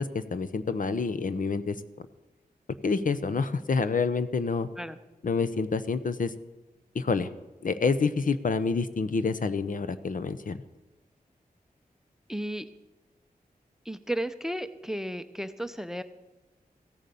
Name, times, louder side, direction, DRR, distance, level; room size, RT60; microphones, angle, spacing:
voice 1, 0.0-2.1 2.8-4.7 5.2-6.3 6.9-7.3 7.6-10.6, left 4 dB, 60° left, 13 dB, 0.8 m, -28 dB
voice 2, 12.3-12.7 13.8-16.0, right 1 dB, 5° right, 12 dB, 0.7 m, -33 dB
15.5 x 9.0 x 6.9 m, 1.1 s
wide cardioid pair, 100°, 15 cm